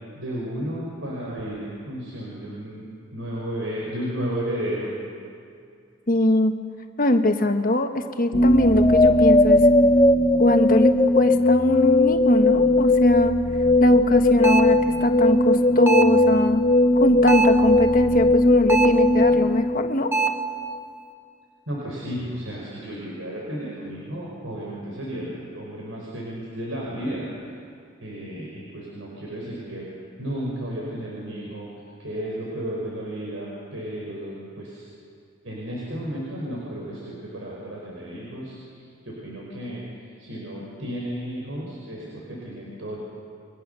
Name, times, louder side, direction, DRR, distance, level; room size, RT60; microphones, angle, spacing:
voice 1, 0.1-2.9 3.1-4.9 21.7-27.3 28.0-29.9 30.2-31.7 32.0-34.9 35.4-39.8 40.2-43.0, equal, 90° right, -4 dB, 5.3 m, -33 dB
voice 2, 6.1-6.5 7.0-9.6 10.4-13.3 13.8-16.6 16.9-20.1, left 1 dB, 45° left, 6 dB, 1.4 m, -22 dB
sound 1, 8.3-20.4, left 2 dB, 25° left, 0.9 m, -18 dB
sound 2, 14.4-14.8 15.9-16.3 17.3-17.7 18.7-19.1 20.1-20.5, right 4 dB, 10° right, 1.2 m, -23 dB
29.5 x 22.5 x 6.9 m, 2.3 s
head